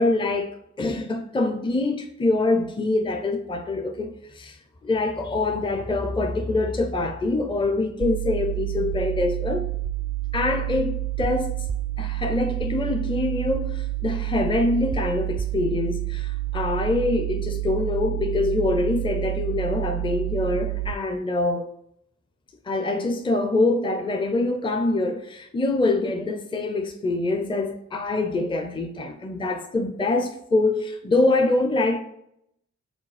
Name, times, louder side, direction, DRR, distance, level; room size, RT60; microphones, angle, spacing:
voice 1, 0.0-4.6 4.8-9.7 10.3-11.5 12.0-21.6 22.7-32.0, left 2 dB, 15° left, 0.5 m, -25 dB
sound 1, 8.0-20.9, right 16 dB, 75° right, 0.5 m, -28 dB
5.0 x 3.9 x 4.8 m
wide cardioid pair, 90°, 29 cm